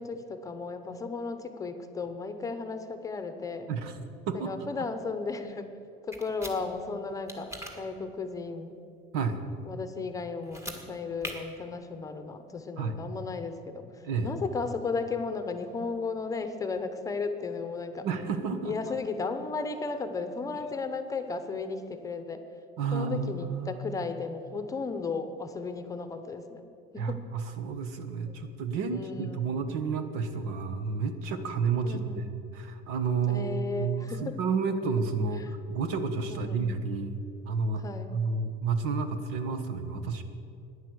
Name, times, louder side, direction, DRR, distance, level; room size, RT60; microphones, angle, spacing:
voice 1, 0.0-3.7 4.3-5.7 6.1-8.7 9.7-18.1 18.6-22.4 22.9-26.7 26.9-27.2 28.3-28.4 28.9-29.5 31.8-32.2 33.3-34.4 35.4-35.5 36.3-36.6 37.8-38.1, left 4 dB, 15° left, 8 dB, 0.8 m, -35 dB
voice 2, 4.3-4.7 9.1-9.4 12.8-13.0 14.0-14.3 18.0-18.7 22.8-23.8 27.0-32.3 32.5-37.2 37.4-37.8 38.1-40.2, right 5 dB, 80° right, 9 dB, 1.4 m, -31 dB
Small Padlock opening closing, 6.1-6.5 7.3-7.7 10.4-10.8 11.2-11.3, equal, 15° right, 1.7 m, -39 dB
15.0 x 10.5 x 7.9 m, 2.6 s
cardioid pair, 165°, 20 cm